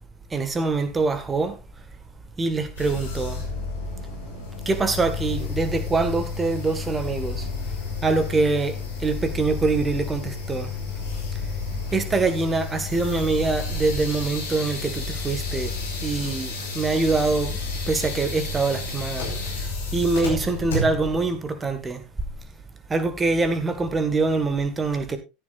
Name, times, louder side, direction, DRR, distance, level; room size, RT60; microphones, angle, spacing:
voice 1, 0.3-1.6 2.4-3.4 4.7-7.5 8.0-10.7 11.9-15.7 16.0-17.6 17.9-19.5 19.9-22.0 22.9-25.2, right 3 dB, 20° right, 1.8 m, -24 dB
sound 1, 2.8-21.2, left 4 dB, 70° left, 5.0 m, -31 dB
14.5 x 10.0 x 2.6 m
figure-of-eight pair, 80°, 0 cm